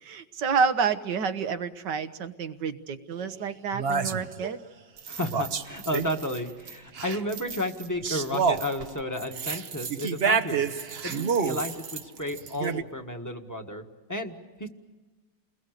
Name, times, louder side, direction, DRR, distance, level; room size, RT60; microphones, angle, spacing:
voice 1, 0.0-4.6, right 6 dB, 70° right, 11 dB, 1.8 m, -29 dB
sound 1, 3.1-3.2 3.7-4.5 5.0-6.4 6.7-12.8, right 6 dB, 45° right, 0.9 m, -29 dB
voice 2, 5.1-14.7, left 1 dB, 10° left, 4 dB, 1.6 m, -33 dB
30.0 x 21.5 x 6.7 m, 1.3 s
omnidirectional pair, 1.9 m